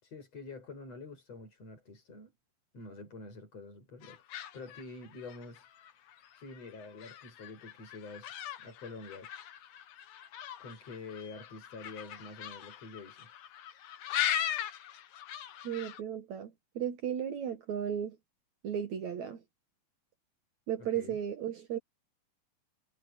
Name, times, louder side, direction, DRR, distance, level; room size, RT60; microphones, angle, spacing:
voice 1, 0.0-2.3 2.7-4.2 4.5-5.7 6.3-9.3 10.6-13.3 20.8-21.2, left 3 dB, 45° left, 7.7 m, -47 dB
sound 1, 4.0-16.0, left 11 dB, 70° left, 2.7 m, -40 dB
voice 2, 15.6-18.2 18.6-19.4 20.7-21.8, right 9 dB, 60° right, 2.5 m, -35 dB
omnidirectional pair, 4.0 m